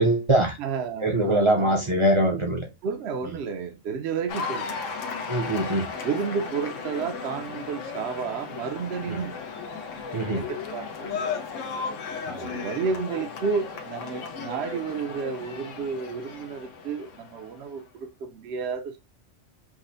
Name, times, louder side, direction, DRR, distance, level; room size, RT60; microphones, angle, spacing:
voice 1, 0.0-0.6 1.0-2.7 5.3-5.9 10.1-10.5 12.3-12.5, right 1 dB, 35° right, 0.5 m, -22 dB
voice 2, 0.6-2.3 2.8-4.8 6.0-9.3 10.3-11.3 12.4-19.0, right 5 dB, 65° right, 0.8 m, -31 dB
Cheering / Applause, 4.3-17.7, left 5 dB, 80° left, 1.1 m, -35 dB
6.0 x 2.1 x 2.5 m
omnidirectional pair, 1.3 m